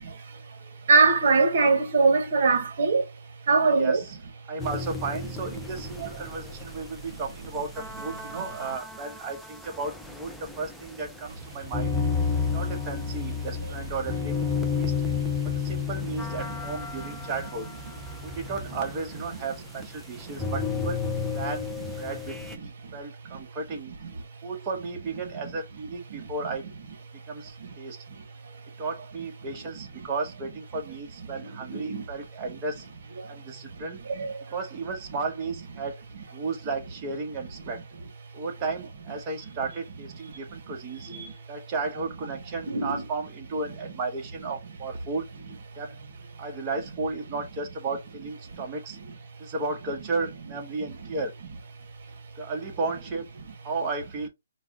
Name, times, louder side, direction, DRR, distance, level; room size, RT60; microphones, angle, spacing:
voice 1, 0.9-3.0 3.5-4.0 6.0-6.1 15.1-15.2 20.3-20.4 26.1-26.3 27.6-27.7 31.4-32.0 34.1-34.3 41.1-41.3 42.7-42.9, right 4 dB, 55° right, 1.3 m, -22 dB
voice 2, 3.6-4.2 4.5-7.7 8.0-11.9 12.5-14.3 14.7-14.9 15.6-17.7 18.2-21.0 21.3-21.7 22.0-23.9 24.4-26.6 27.3-28.0 28.8-32.9 33.3-34.0 34.5-35.9 36.3-37.8 38.3-41.1 41.5-45.2 45.8-46.0 46.4-49.0 49.4-51.3 52.4-53.2 53.6-54.3, right 3 dB, 25° right, 1.2 m, -34 dB
sound 1, 4.6-22.6, left 5 dB, ahead, 0.5 m, -32 dB
4.7 x 2.3 x 3.7 m
hypercardioid pair, 155°, 0 cm